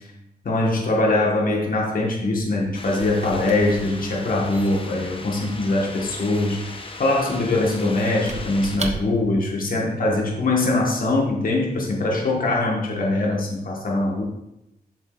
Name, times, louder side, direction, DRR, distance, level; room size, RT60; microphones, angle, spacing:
voice 1, 0.4-6.6 7.0-14.2, left 2 dB, 60° left, -2 dB, 1.2 m, -22 dB
Squeak / Wood, 2.3-9.5, right 3 dB, 45° right, 0.7 m, -38 dB
sound 1, 2.7-8.8, left 3 dB, 35° left, 0.7 m, -38 dB
7.5 x 7.3 x 2.3 m, 0.87 s
wide cardioid pair, 120°, 17 cm